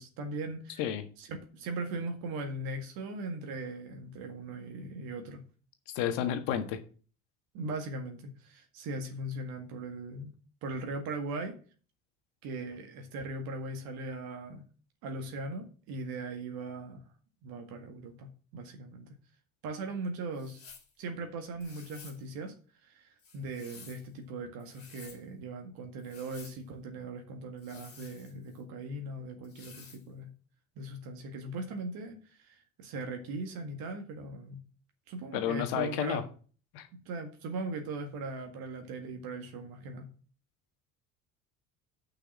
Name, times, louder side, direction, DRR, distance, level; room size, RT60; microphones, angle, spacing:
voice 1, 0.0-0.8 1.2-5.4 7.5-10.3 10.6-11.5 12.4-14.6 15.0-17.0 17.4-19.1 19.6-20.6 21.0-22.5 22.8-30.3 30.8-34.6 35.1-36.3 37.1-40.1, right 2 dB, 55° right, 4 dB, 1.9 m, -39 dB
voice 2, 5.9-6.8 35.3-36.2 36.7-36.9, left 10 dB, 60° left, 8 dB, 1.6 m, -31 dB
sound 1, 20.3-20.9 21.6-22.2 23.2-24.1 24.6-25.2 26.0-26.6 27.6-28.6 29.4-30.0, left 5 dB, 35° left, 2.7 m, -53 dB
6.7 x 5.8 x 7.4 m, 0.40 s
figure-of-eight pair, 60°, 42 cm